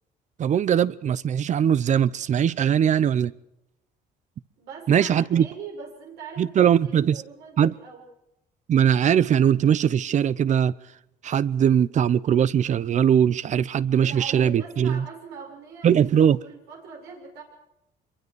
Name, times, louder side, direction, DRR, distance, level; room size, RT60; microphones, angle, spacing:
voice 1, 0.4-3.3 4.9-5.5 6.4-7.2 7.6-7.7 8.7-10.7 11.2-15.0 15.8-16.4, right 9 dB, 45° right, 0.7 m, -20 dB
voice 2, 4.6-8.0 14.0-16.0 16.3-17.4, right 5 dB, 90° right, 6.7 m, -41 dB
25.0 x 23.0 x 4.8 m
cardioid pair, 110°, 17 cm